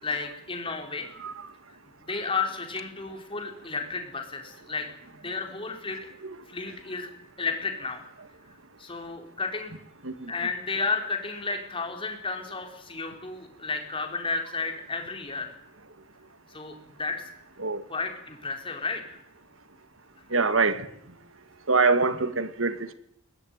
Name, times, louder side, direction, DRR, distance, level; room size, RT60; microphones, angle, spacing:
voice 1, 0.0-1.1 2.0-6.0 6.5-7.1 7.4-8.0 8.8-9.7 10.3-15.6 16.5-17.2 17.9-19.2, left 4 dB, 25° left, 4.7 m, -32 dB
voice 2, 20.3-20.9 21.7-22.9, right 4 dB, 90° right, 1.8 m, -25 dB
22.5 x 20.0 x 9.5 m
head